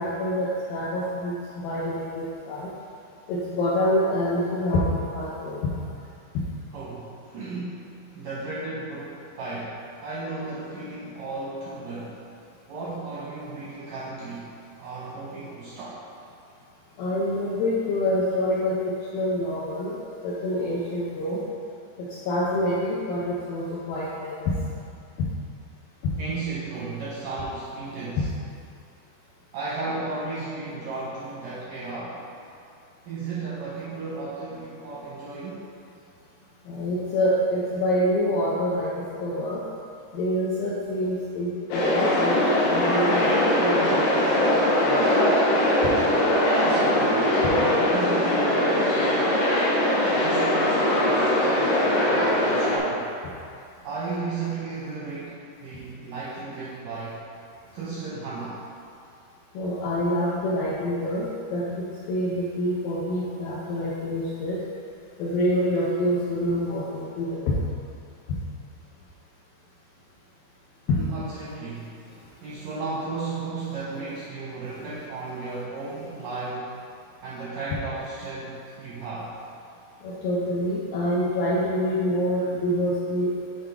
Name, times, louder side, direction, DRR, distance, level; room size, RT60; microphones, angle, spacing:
voice 1, 0.0-2.7 3.3-5.6 17.0-18.8 19.1-20.0 20.2-21.4 22.0-24.5 28.2-28.3 36.7-39.6 40.1-44.5 44.8-45.0 59.6-64.6 65.2-67.5 70.9-71.0 80.0-83.4, left 1 dB, 80° left, -6 dB, 2.0 m, -26 dB
voice 2, 6.7-7.8 8.1-12.2 12.7-16.1 26.2-28.3 29.5-32.3 33.1-35.7 46.5-49.4 50.0-53.1 53.8-57.2 57.7-58.7 70.9-72.0 72.4-76.8 77.2-79.4, right 3 dB, 80° right, -8 dB, 2.0 m, -34 dB
sound 1, 41.7-52.8, left 1 dB, 65° left, 2.5 m, -21 dB
7.4 x 5.5 x 3.4 m, 2.5 s
omnidirectional pair, 4.9 m